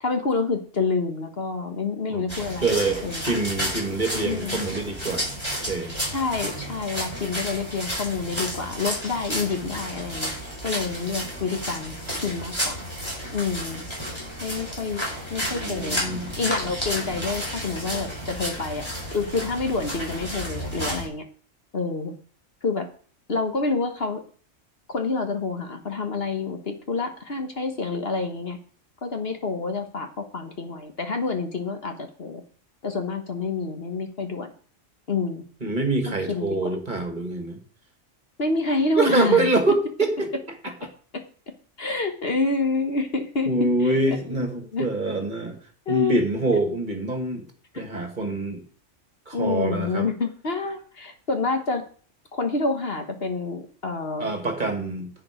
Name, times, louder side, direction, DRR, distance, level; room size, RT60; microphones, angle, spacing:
voice 1, 0.0-3.2 4.2-4.6 6.1-10.3 10.6-12.0 12.2-12.8 13.3-13.8 14.4-16.0 16.4-18.8 19.1-21.2 21.7-22.1 22.6-22.9 23.3-24.2 24.9-28.6 29.0-32.4 32.8-34.5 35.1-35.4 36.3-36.7 38.4-39.5 41.8-43.5 43.8-44.0 44.6-44.9 45.9-46.2 47.7-47.9 49.3-51.8 52.3-54.3, left 4 dB, 50° left, 5 dB, 1.6 m, -28 dB
sound 1, 2.3-21.1, equal, 20° left, 4.9 m, -32 dB
voice 2, 2.6-6.0 15.5-16.3 35.6-37.6 39.0-40.3 43.5-45.6 45.9-47.4 47.7-48.6 49.3-50.1 54.2-55.1, right 2 dB, 35° right, 5 dB, 2.2 m, -25 dB
10.5 x 9.1 x 5.1 m, 0.43 s
omnidirectional pair, 1.3 m